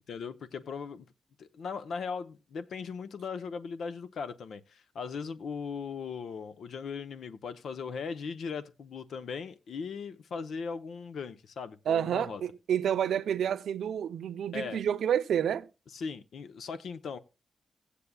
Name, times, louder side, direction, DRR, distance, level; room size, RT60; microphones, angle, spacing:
voice 1, 0.1-1.1 1.4-12.4 14.5-14.8 15.9-17.2, left 5 dB, 80° left, 0.8 m, -38 dB
voice 2, 11.9-15.7, right 9 dB, 85° right, 0.6 m, -29 dB
16.5 x 8.4 x 2.3 m
cardioid pair, 80°, 0 cm